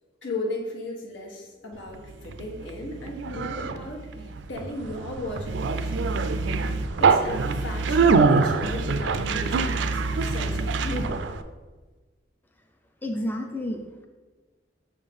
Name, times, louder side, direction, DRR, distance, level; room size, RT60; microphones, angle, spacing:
voice 1, 0.2-6.2 7.0-11.2, left 1 dB, 85° left, -1 dB, 1.3 m, -36 dB
Conversation, 1.9-11.4, right 4 dB, 75° right, 0.4 m, -24 dB
voice 2, 13.0-14.1, left 1 dB, 10° left, 3 dB, 0.4 m, -31 dB
6.6 x 3.6 x 5.3 m, 1.3 s
head